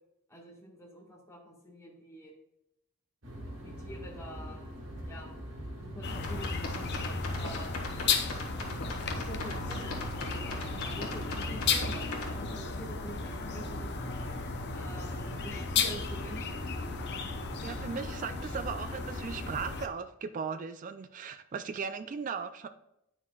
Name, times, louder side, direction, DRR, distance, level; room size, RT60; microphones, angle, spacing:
voice 1, 0.3-2.3 3.6-4.7 5.1-5.3 5.8-7.7 9.1-13.9 14.7-16.7, equal, 15° left, -2 dB, 1.5 m, -47 dB
sound 1, 3.2-19.8, right 1 dB, 60° right, 1.6 m, -43 dB
sound 2, 6.0-19.9, left 5 dB, 50° left, 0.6 m, -35 dB
sound 3, 6.1-12.3, left 3 dB, 80° left, 1.5 m, -40 dB
voice 2, 17.6-22.7, right 5 dB, 35° right, 9 dB, 0.3 m, -37 dB
9.3 x 6.0 x 2.3 m, 0.86 s
head